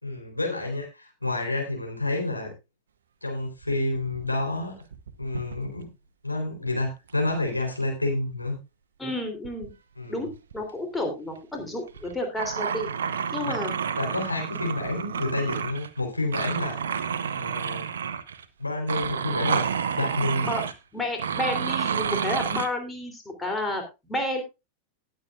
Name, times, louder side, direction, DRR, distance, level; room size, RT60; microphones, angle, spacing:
voice 1, 0.0-2.5 3.2-4.8 5.2-5.9 6.2-8.6 10.0-10.3 13.4-13.5 13.9-16.8 17.3-17.9 18.6-19.6 20.0-20.5, left 2 dB, 85° left, 1 dB, 3.8 m, -29 dB
sound 1, 3.6-4.5 4.8-5.8 7.2-7.7 9.4-9.7 10.3-10.6 11.0-11.1 11.9-16.0 16.3-18.5 18.9-20.7 21.2-22.7, right 7 dB, 65° right, 0.9 m, -30 dB
voice 2, 9.0-9.7 10.1-12.9 13.3-13.7 20.4-20.6 20.9-24.4, left 1 dB, 10° left, 4 dB, 3.2 m, -31 dB
18.5 x 8.0 x 2.4 m, 0.25 s
figure-of-eight pair, 90°, 0 cm